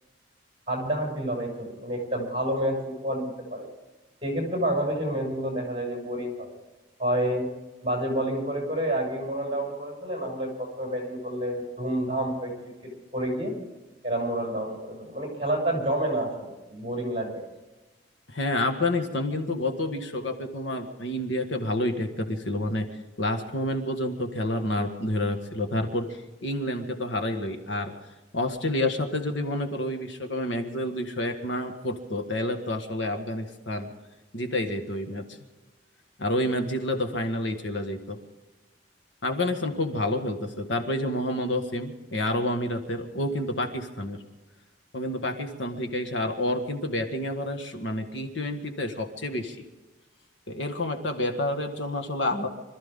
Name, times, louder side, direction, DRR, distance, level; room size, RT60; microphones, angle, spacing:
voice 1, 0.7-3.7 4.2-6.5 7.0-7.5 7.8-12.5 13.1-13.5 14.0-17.4, right 1 dB, 30° right, -1 dB, 6.3 m, -29 dB
voice 2, 18.3-22.9 23.2-27.9 28.3-33.9 34.3-35.3 36.2-38.2 39.2-44.2 44.9-49.6 50.5-52.5, left 1 dB, 70° left, 5 dB, 1.8 m, -29 dB
26.0 x 14.0 x 3.8 m, 1.1 s
head